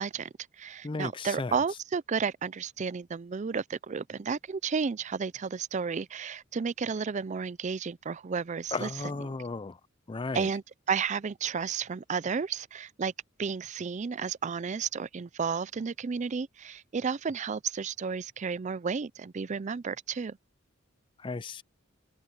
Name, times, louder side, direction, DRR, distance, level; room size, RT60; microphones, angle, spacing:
voice 1, 0.0-9.1 10.3-13.1 13.4-20.4, right 6 dB, 35° right, 0.4 m, -32 dB
voice 2, 0.8-1.6 8.7-9.8 10.1-10.5 21.2-21.6, left 3 dB, 25° left, 0.4 m, -34 dB
head